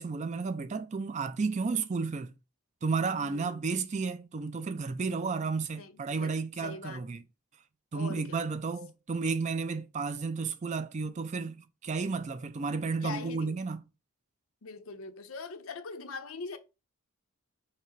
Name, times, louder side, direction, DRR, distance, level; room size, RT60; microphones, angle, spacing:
voice 1, 0.0-2.3 2.8-7.2 7.9-13.8, right 4 dB, 35° right, 0.4 m, -32 dB
voice 2, 3.2-3.6 5.8-7.1 7.9-8.5 13.0-13.6 14.6-16.6, left 4 dB, 70° left, 0.6 m, -42 dB
5.8 x 2.0 x 4.5 m
head